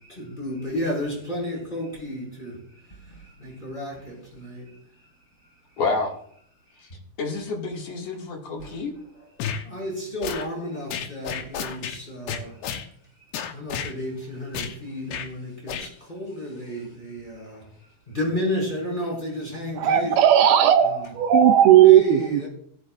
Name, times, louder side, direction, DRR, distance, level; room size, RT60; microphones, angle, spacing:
voice 1, 0.1-2.6 3.4-4.7 9.6-12.6 13.5-17.6 18.1-20.2 20.8-21.1 21.8-22.5, left 1 dB, 10° left, 5.3 m, -32 dB
voice 2, 5.8-6.1 6.8-6.9 7.2-8.9, left 3 dB, 45° left, 2.7 m, -28 dB
sound 1, 9.4-9.6 10.2-10.5 10.9-12.0 12.3-12.9 13.3-13.9 14.5-14.8 15.1-15.3 15.7-15.9, left 8 dB, 90° left, 3.3 m, -31 dB
voice 3, 19.8-22.5, right 10 dB, 80° right, 2.3 m, -16 dB
18.0 x 10.0 x 2.5 m
omnidirectional pair, 4.8 m